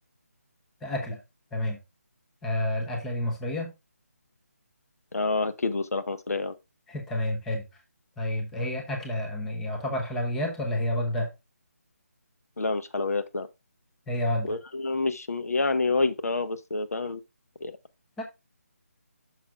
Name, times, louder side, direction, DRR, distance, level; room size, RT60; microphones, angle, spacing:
voice 1, 0.8-1.2 1.5-1.8 2.4-3.7 6.9-7.6 8.2-11.3 14.1-14.6 18.2-18.3, left 1 dB, 5° left, 0.5 m, -29 dB
voice 2, 5.1-6.5 12.6-13.5 14.5-17.2 17.6-17.7, left 3 dB, 75° left, 0.9 m, -28 dB
9.9 x 6.0 x 2.2 m
figure-of-eight pair, 170°, 8 cm